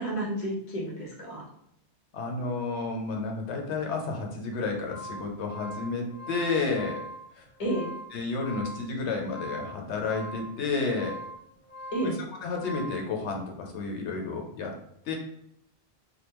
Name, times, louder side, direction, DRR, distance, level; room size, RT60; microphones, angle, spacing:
voice 1, 0.0-1.4 7.6-7.9 11.9-12.2, right 1 dB, 35° left, -2 dB, 0.8 m, -31 dB
voice 2, 2.1-7.0 7.4-7.5 8.1-11.2 12.0-12.1 12.4-14.8 15.0-15.1, left 3 dB, 85° left, 1 dB, 1.0 m, -31 dB
sound 1, 4.6-13.1, equal, 75° right, 1.0 m, -42 dB
3.4 x 2.3 x 2.9 m, 0.73 s
omnidirectional pair, 1.1 m